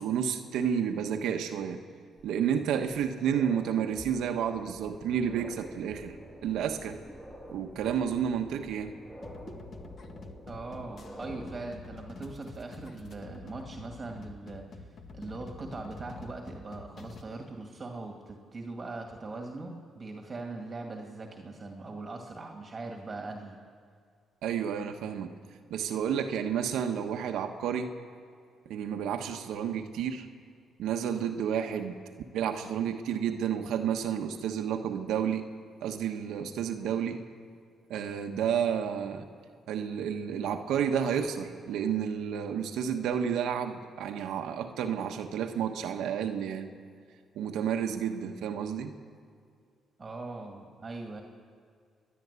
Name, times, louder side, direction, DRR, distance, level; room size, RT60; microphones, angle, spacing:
voice 1, 0.0-1.8 2.2-6.1 6.4-7.0 7.5-8.9 24.4-25.3 25.7-27.9 28.7-30.3 30.8-32.0 32.3-35.4 35.8-37.2 37.9-39.3 39.7-46.7 47.3-48.9, right 8 dB, 85° right, 5 dB, 1.2 m, -31 dB
sound 1, 2.2-2.3 2.8-11.6, equal, 10° left, 3.6 m, -48 dB
sound 2, 9.2-17.2, left 3 dB, 55° left, 1.4 m, -47 dB
voice 2, 10.5-23.6 50.0-51.2, right 3 dB, 30° right, 2 dB, 2.1 m, -41 dB
29.5 x 11.0 x 8.3 m, 2.3 s
cardioid pair, 90°, 0 cm